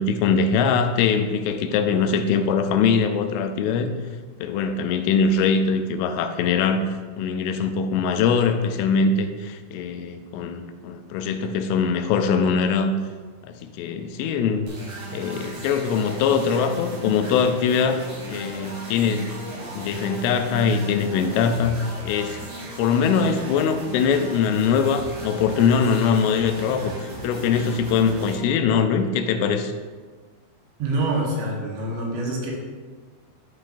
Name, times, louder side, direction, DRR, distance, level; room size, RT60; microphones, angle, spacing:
voice 1, 0.0-3.9 4.4-6.8 7.2-12.9 13.5-14.7 15.1-19.3 19.8-22.4 22.8-29.7, left 6 dB, 85° left, 7 dB, 3.1 m, -22 dB
sound 1, 14.7-28.4, right 1 dB, 50° right, 2.8 m, -37 dB
voice 2, 30.8-32.5, right 2 dB, 75° right, -2 dB, 3.5 m, -26 dB
13.5 x 5.6 x 2.6 m, 1.4 s
omnidirectional pair, 5.6 m